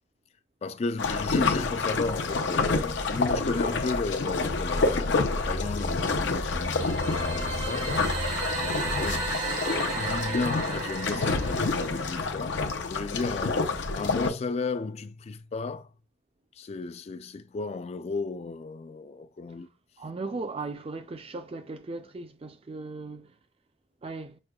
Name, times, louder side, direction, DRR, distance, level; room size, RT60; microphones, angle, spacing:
voice 1, 0.6-8.1 8.5-9.3 9.9-13.7 13.9-15.9 16.6-19.7, left 3 dB, 35° left, 0.3 m, -34 dB
sound 1, 1.0-14.3, left 3 dB, 75° left, 0.6 m, -28 dB
sound 2, 4.2-9.3, left 1 dB, 60° left, 1.0 m, -36 dB
sound 3, 6.5-12.4, right 4 dB, 90° right, 1.6 m, -35 dB
voice 2, 20.0-23.3 24.0-24.4, right 3 dB, 30° right, 0.4 m, -37 dB
6.2 x 2.2 x 2.3 m
head